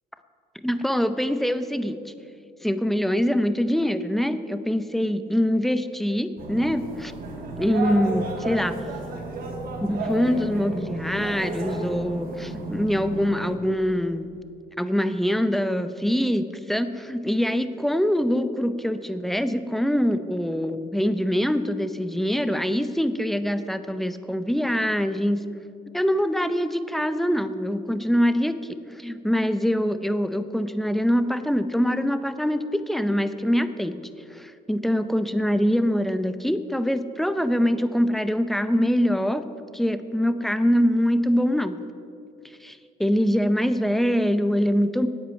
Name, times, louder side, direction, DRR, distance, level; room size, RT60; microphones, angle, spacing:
voice 1, 0.6-2.1 2.6-7.1 7.6-8.8 9.8-14.3 14.8-25.5 25.9-28.6 28.9-39.4 39.7-41.8 42.6-45.1, equal, ahead, 11 dB, 0.7 m, -24 dB
sound 1, 6.4-13.6, right 1 dB, 60° right, 2.5 m, -33 dB
10.5 x 8.7 x 9.0 m, 2.5 s
cardioid pair, 110°, 17 cm